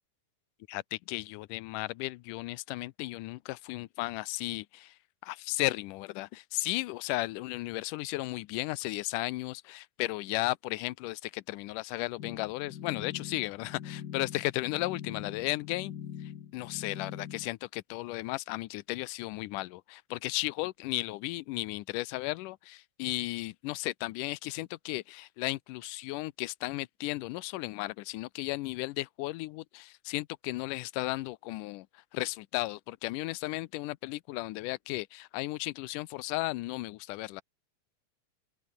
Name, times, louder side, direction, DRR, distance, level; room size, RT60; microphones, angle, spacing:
voice 1, 0.7-5.0 5.2-15.9 16.2-37.4, left 20 dB, 85° left, 2.3 m, -35 dB
sound 1, 12.2-17.5, left 9 dB, 60° left, 1.0 m, -43 dB
open air
omnidirectional pair, 3.6 m